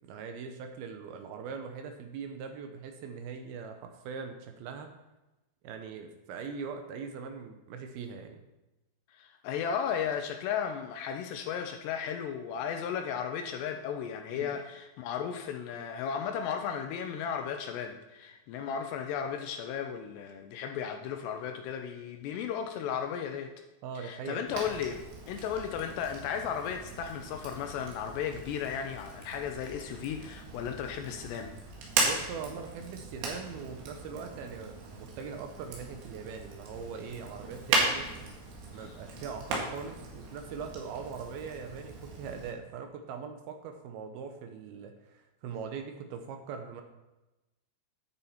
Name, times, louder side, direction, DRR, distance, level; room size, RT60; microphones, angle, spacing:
voice 1, 0.1-4.9 5.6-8.4 14.3-14.6 23.8-24.7 32.0-38.1 38.7-46.8, right 6 dB, 85° right, 5 dB, 2.2 m, -41 dB
voice 2, 9.1-23.5 24.0-25.0 25.3-31.6 38.8-38.9, left 8 dB, 80° left, 5 dB, 2.6 m, -35 dB
Fire, 24.5-42.5, right 3 dB, 70° right, 4.0 m, -37 dB
10.5 x 9.0 x 4.3 m, 1.0 s
omnidirectional pair, 5.4 m